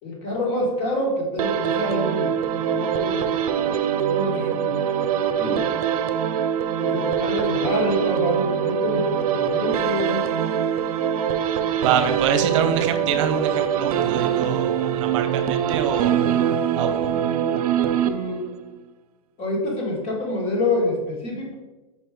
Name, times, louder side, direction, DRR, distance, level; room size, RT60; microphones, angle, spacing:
voice 1, 0.0-2.4 2.7-3.3 4.1-4.9 5.4-5.7 6.8-10.3 11.8-12.2 12.5-12.6 18.0-18.5 19.4-21.5, left 1 dB, 35° left, -1 dB, 1.9 m, -27 dB
sound 1, 1.4-18.6, right 9 dB, 85° right, 0.5 m, -23 dB
voice 2, 11.8-16.1 16.8-17.1, right 7 dB, 55° right, 8 dB, 0.8 m, -25 dB
5.3 x 4.5 x 4.9 m, 1.1 s
supercardioid pair, 155°, 18 cm